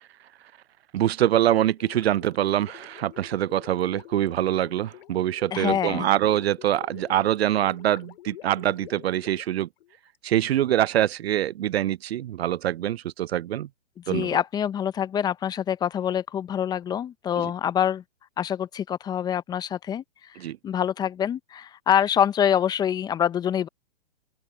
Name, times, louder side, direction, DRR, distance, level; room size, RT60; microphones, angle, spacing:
voice 1, 0.9-9.7 10.2-13.7 14.1-14.4 17.4-17.5 20.4-20.6, right 12 dB, 70° right, 0.5 m, -24 dB
Gurgling, 1.8-10.2, left 14 dB, 55° left, 2.5 m, -47 dB
voice 2, 5.5-6.1 14.1-18.0 18.4-23.7, left 9 dB, 10° left, 0.7 m, -25 dB
open air
hypercardioid pair, 135°, 33 cm